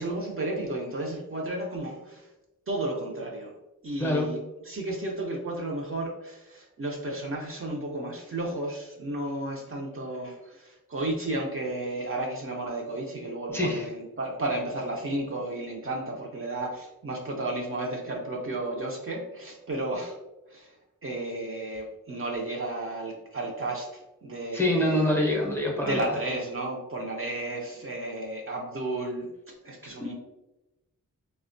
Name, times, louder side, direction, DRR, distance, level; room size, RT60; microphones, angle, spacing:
voice 1, 0.0-2.3 2.7-3.5 3.8-4.4 4.6-20.2 20.5-20.7 21.0-25.1 25.8-29.3 29.6-30.1, right 2 dB, 45° right, -1 dB, 0.5 m, -33 dB
voice 2, 13.5-13.9 24.5-26.0 30.0-30.1, left 1 dB, 5° left, -2 dB, 0.6 m, -25 dB
3.5 x 2.1 x 2.5 m, 1.0 s
wide cardioid pair, 135°, 32 cm